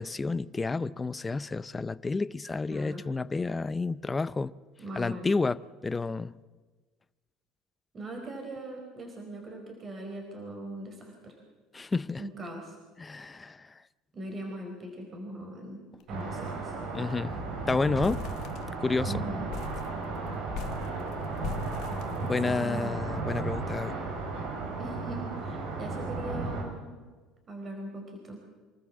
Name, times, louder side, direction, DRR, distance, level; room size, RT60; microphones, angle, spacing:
voice 1, 0.0-4.5 4.9-6.4 11.7-12.2 13.0-13.7 16.9-17.3 17.7-18.3 18.8-19.1 22.2-24.0, left 3 dB, 20° left, 0.6 m, -30 dB
voice 2, 2.7-3.0 4.8-5.3 7.9-11.4 12.2-12.8 14.1-15.8 16.1-16.7 19.1-19.5 22.3-23.1 24.8-26.9 27.5-28.4, right 1 dB, 35° right, 4.8 m, -40 dB
sound 1, 16.0-16.2 16.5-16.6 16.9-17.3 17.7-19.0 19.5-22.8, left 8 dB, 65° left, 1.4 m, -42 dB
sound 2, 16.1-26.6, right 3 dB, 70° right, 4.4 m, -34 dB
26.0 x 14.0 x 7.5 m
supercardioid pair, 85°, 0 cm